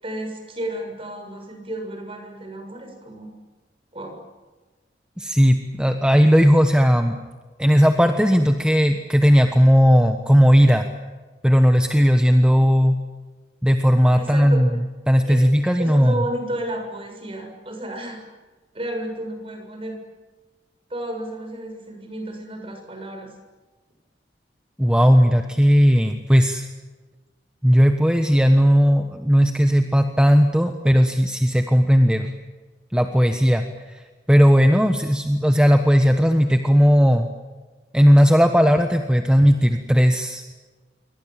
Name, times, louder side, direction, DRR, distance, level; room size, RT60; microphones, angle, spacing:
voice 1, 0.0-3.3 3.9-4.2 14.1-14.6 15.3-15.4 15.8-18.2 18.7-20.0 20.9-23.3, right 1 dB, 30° right, 4 dB, 6.9 m, -32 dB
voice 2, 5.2-7.2 7.6-10.9 11.4-13.0 13.6-16.2 24.8-26.7 27.6-32.3 32.9-34.0 34.3-37.3 37.9-40.4, equal, 5° right, 5 dB, 1.2 m, -16 dB
28.5 x 23.5 x 7.6 m, 1.3 s
head